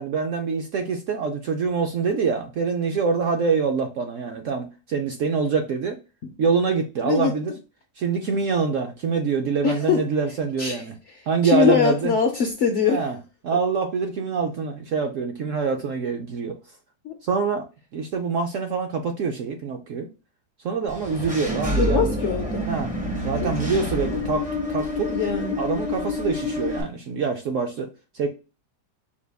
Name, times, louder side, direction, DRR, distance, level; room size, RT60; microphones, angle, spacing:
voice 1, 0.0-6.0 6.4-7.5 8.0-10.9 11.3-12.1 12.8-13.2 13.4-16.6 17.2-17.6 17.9-20.1 20.6-22.2 22.7-22.9 23.2-25.1 25.6-27.9 28.1-28.3, right 5 dB, 70° right, 3 dB, 0.7 m, -25 dB
voice 2, 9.6-10.0 10.6-10.8 11.5-13.0 17.0-17.1 21.8-22.7 23.4-23.5 25.1-25.6, left 6 dB, 70° left, 3 dB, 0.7 m, -22 dB
Engine / Mechanisms, 20.9-26.8, left 1 dB, 10° right, 0.3 m, -28 dB
4.9 x 2.2 x 3.3 m, 0.30 s
omnidirectional pair, 1.8 m